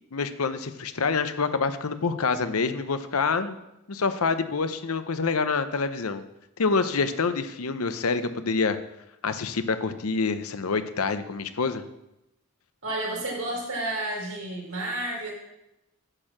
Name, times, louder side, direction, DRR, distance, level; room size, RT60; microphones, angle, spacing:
voice 1, 0.1-3.6 3.9-6.2 6.6-8.8 9.2-11.8, left 4 dB, 85° left, 10 dB, 0.7 m, -26 dB
voice 2, 12.8-15.3, right 1 dB, 85° right, -3 dB, 4.1 m, -31 dB
9.9 x 4.5 x 7.3 m, 0.89 s
head